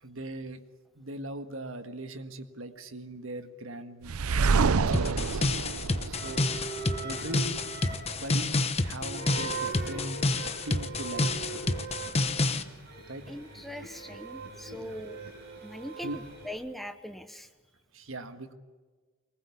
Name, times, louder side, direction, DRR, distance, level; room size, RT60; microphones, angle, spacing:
voice 1, 0.0-0.6 0.9-4.1 4.9-5.4 6.0-6.5 7.0-7.6 8.1-10.2 10.6-11.5 13.1-13.3 14.8-15.0 16.0-16.2 17.9-18.5, right 1 dB, 70° right, 8 dB, 1.7 m, -40 dB
sound 1, 4.1-7.0, right 4 dB, 90° right, 0.6 m, -27 dB
sound 2, 4.9-12.6, left 2 dB, 30° left, 1.0 m, -29 dB
sound 3, 6.1-16.5, right 4 dB, 50° right, 6.3 m, -41 dB
voice 2, 13.3-15.2 15.6-17.5, left 1 dB, ahead, 8 dB, 0.9 m, -41 dB
23.5 x 20.5 x 8.5 m, 1.4 s
head